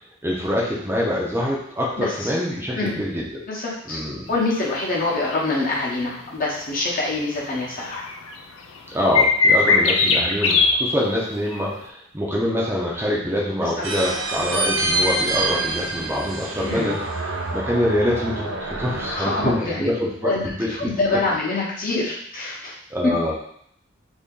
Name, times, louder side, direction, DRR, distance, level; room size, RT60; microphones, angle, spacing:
voice 1, 0.2-3.3 3.9-4.3 8.9-17.0 17.5-20.9 22.9-23.3, left 1 dB, 10° right, -4 dB, 0.6 m, -25 dB
voice 2, 2.0-2.4 2.7-3.0 3.5-4.0 4.3-8.0 13.6-13.7 16.6-16.9 19.1-19.9 20.2-22.7 23.0-23.1, left 2 dB, 45° left, -4 dB, 0.9 m, -25 dB
sound 1, 5.3-5.5 6.0-6.1 7.1-7.3 7.6-7.7 7.9-8.3 9.1-10.7 11.5-11.6, left 4 dB, 90° left, 0.4 m, -18 dB
sound 2, 13.8-19.6, right 2 dB, 70° right, 0.6 m, -26 dB
2.8 x 2.7 x 3.6 m, 0.66 s
head